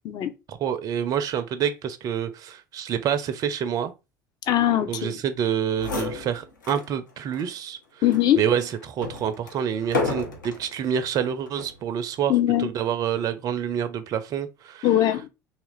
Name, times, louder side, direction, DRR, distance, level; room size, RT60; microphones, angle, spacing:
voice 1, 0.5-3.9 4.9-7.8 8.4-12.3 12.6-14.9, right 8 dB, 35° right, 0.4 m, -27 dB
voice 2, 4.5-5.2 8.0-8.4 12.3-12.7 14.8-15.3, left 12 dB, 45° left, 0.5 m, -21 dB
sound 1, 5.4-5.5 5.7-6.9 7.3-7.4 8.1-10.7 11.5-11.8, left 3 dB, 80° left, 0.6 m, -31 dB
2.8 x 2.4 x 3.0 m
figure-of-eight pair, 65°, 10 cm